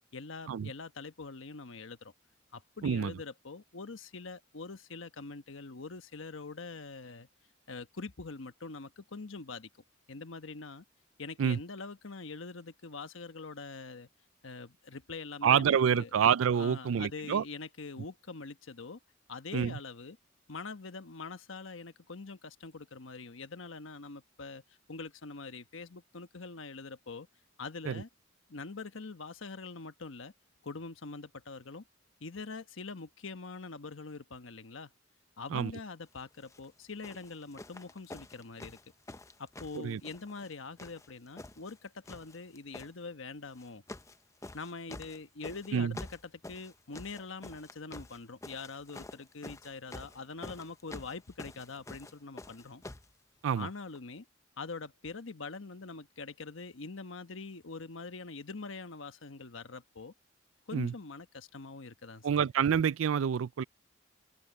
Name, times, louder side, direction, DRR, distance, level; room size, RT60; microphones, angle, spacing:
voice 1, 0.1-2.1 2.5-7.3 7.7-9.7 10.1-10.8 11.2-14.1 14.4-16.1 16.5-19.0 19.3-20.2 20.5-24.6 24.9-27.3 27.6-28.1 28.5-30.3 30.6-31.8 32.2-34.9 35.4-38.8 39.4-43.8 44.5-46.0 46.5-52.8 53.6-54.3 54.6-60.1 60.7-62.4, left 4 dB, 80° left, 1.1 m, -44 dB
voice 2, 2.8-3.1 11.4-11.6 15.4-17.4 19.5-19.8 27.9-28.0 35.5-35.7 39.7-40.0 45.7-45.9 53.4-53.7 60.7-60.9 62.2-63.6, right 7 dB, 85° right, 0.4 m, -27 dB
sound 1, 36.4-36.6 37.0-40.5 40.8-41.8 42.0-42.9 43.5-44.2 44.4-53.1 53.9-54.0, left 2 dB, 15° left, 0.6 m, -48 dB
head